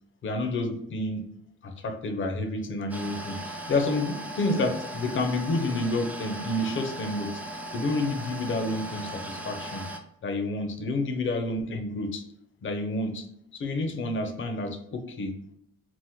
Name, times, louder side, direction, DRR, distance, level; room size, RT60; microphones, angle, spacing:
voice 1, 0.2-1.2 1.6-7.4 7.7-9.8 10.2-12.2 12.6-13.3 13.5-15.4, left 2 dB, 40° left, 5 dB, 0.6 m, -29 dB
sound 1, 2.9-10.0, right 1 dB, 5° right, 0.3 m, -38 dB
2.9 x 2.0 x 3.5 m, 0.74 s
cardioid pair, 90°, 30 cm